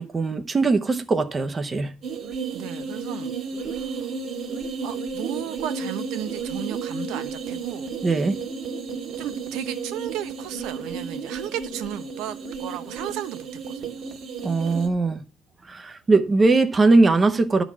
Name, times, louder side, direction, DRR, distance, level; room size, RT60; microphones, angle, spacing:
voice 1, 0.0-1.9 8.0-8.4 14.4-15.2 15.7-17.6, right 3 dB, 20° right, 0.7 m, -20 dB
sound 1, 2.0-14.9, right 5 dB, 40° right, 1.7 m, -33 dB
voice 2, 2.5-3.3 3.6-4.2 4.8-7.9 9.2-14.0, right 11 dB, 85° right, 1.0 m, -34 dB
12.0 x 4.0 x 7.3 m
cardioid pair, 165°, 0 cm